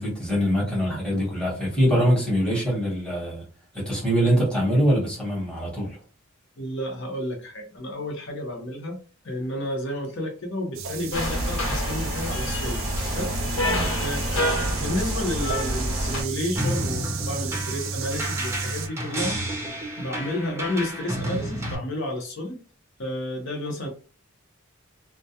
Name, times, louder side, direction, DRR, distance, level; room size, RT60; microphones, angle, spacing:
voice 1, 0.0-3.4 3.7-6.0 13.6-13.9, equal, 5° left, 0.9 m, -23 dB
voice 2, 6.6-9.0 9.2-13.4 14.0-19.4 20.0-22.6 23.0-23.9, left 1 dB, 60° left, 0.7 m, -31 dB
sound 1, 10.7-18.9, right 5 dB, 65° right, 0.4 m, -33 dB
sound 2, 11.1-16.2, equal, 85° left, 1.2 m, -27 dB
sound 3, 16.6-21.8, right 1 dB, 10° right, 0.5 m, -31 dB
2.2 x 2.2 x 2.7 m
head